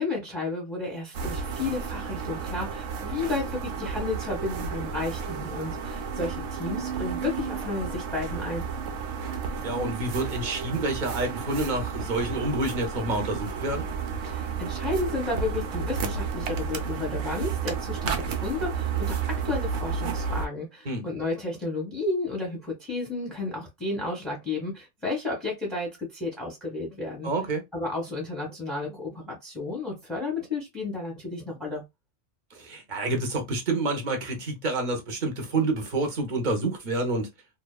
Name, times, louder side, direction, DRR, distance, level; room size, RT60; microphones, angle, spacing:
voice 1, 0.0-8.7 14.2-27.3 27.7-31.8, left 3 dB, ahead, 0.8 m, -32 dB
sound 1, 1.1-20.5, right 6 dB, 85° right, 0.9 m, -32 dB
voice 2, 9.6-13.8 20.9-21.1 27.2-27.6 32.5-37.3, right 2 dB, 45° right, 0.7 m, -28 dB
2.8 x 2.2 x 2.2 m
omnidirectional pair, 1.2 m